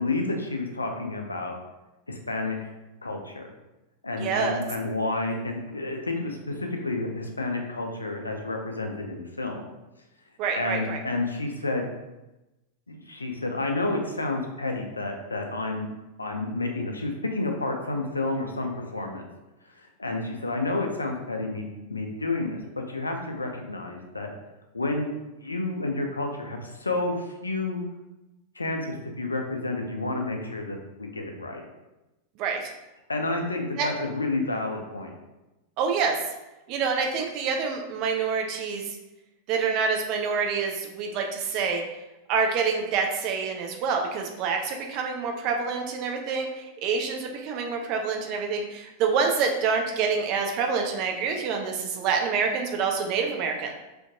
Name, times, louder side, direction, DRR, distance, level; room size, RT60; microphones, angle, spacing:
voice 1, 0.0-1.6 2.1-2.7 3.0-3.5 4.0-9.7 10.6-11.9 12.9-15.9 16.2-19.2 19.8-24.3 24.7-25.1 25.4-27.8 28.6-31.6 33.1-35.1, left 2 dB, 80° left, 3 dB, 0.3 m, -30 dB
voice 2, 4.2-4.6 10.4-11.0 32.4-32.7 33.8-33.9 35.8-36.2 36.7-38.8 39.5-41.8 42.3-53.7, right 5 dB, 40° right, 2 dB, 0.4 m, -27 dB
2.5 x 2.2 x 2.6 m, 0.99 s
figure-of-eight pair, 90°, 0 cm